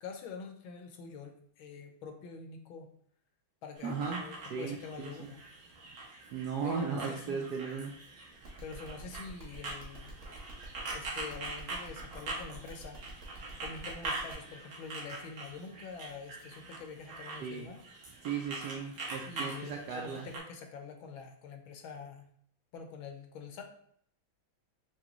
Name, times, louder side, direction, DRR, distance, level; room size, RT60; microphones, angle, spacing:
voice 1, 0.0-2.9 3.6-5.4 6.6-7.5 8.6-10.1 10.9-13.0 13.6-17.8 19.3-22.3 22.7-23.6, left 5 dB, 80° left, 4 dB, 1.5 m, -46 dB
sound 1, 3.8-20.4, right 2 dB, 55° right, 1.4 m, -43 dB
voice 2, 3.8-4.2 4.5-5.3 6.3-7.9 17.4-17.7 18.2-20.3, right 6 dB, 75° right, 0 dB, 1.0 m, -36 dB
sound 2, 8.4-14.3, right 4 dB, 30° right, 0.7 m, -52 dB
6.2 x 2.3 x 2.9 m, 0.63 s
omnidirectional pair, 2.2 m